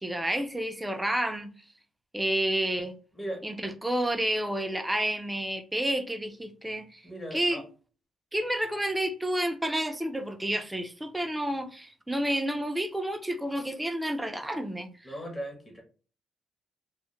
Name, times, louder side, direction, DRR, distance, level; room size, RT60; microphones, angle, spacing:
voice 1, 0.0-1.5 2.1-2.9 3.4-7.1 7.3-7.6 8.3-14.9, right 1 dB, 10° right, 0.4 m, -30 dB
voice 2, 7.0-7.6 15.0-15.8, equal, 20° left, 0.8 m, -37 dB
2.1 x 2.0 x 2.9 m
cardioid pair, 90°, 0 cm